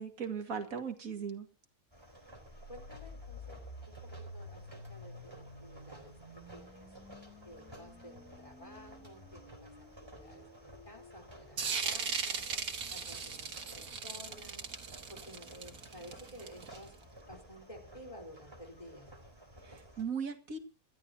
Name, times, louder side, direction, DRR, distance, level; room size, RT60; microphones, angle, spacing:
voice 1, 0.0-1.5 20.0-20.6, right 6 dB, 65° right, 2.3 m, -37 dB
sound 1, 1.9-20.0, equal, 15° right, 3.8 m, -54 dB
sound 2, 2.4-12.3, left 1 dB, 60° left, 4.2 m, -52 dB
voice 2, 2.7-3.6 3.9-4.0 4.3-6.2 6.5-6.9 7.4-12.4 12.9-14.7 15.1-16.9 17.3-19.1, equal, 20° left, 3.9 m, -53 dB
sound 3, 11.6-16.9, right 5 dB, 85° right, 2.1 m, -38 dB
27.5 x 13.0 x 2.7 m
omnidirectional pair, 1.6 m